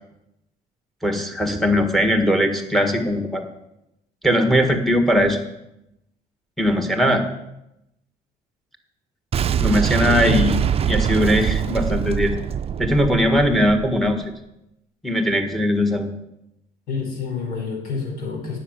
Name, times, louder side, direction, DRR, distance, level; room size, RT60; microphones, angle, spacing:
voice 1, 1.0-3.4 4.2-5.4 6.6-7.2 9.6-10.6 10.9-12.3 12.8-14.2 15.0-16.1, equal, ahead, 5 dB, 1.6 m, -20 dB
Boom, 9.3-14.2, right 8 dB, 35° right, 0.5 m, -23 dB
voice 2, 10.1-10.4 16.9-18.6, left 4 dB, 65° left, 0 dB, 4.6 m, -27 dB
9.8 x 6.5 x 7.6 m, 0.86 s
cardioid pair, 110°, 17 cm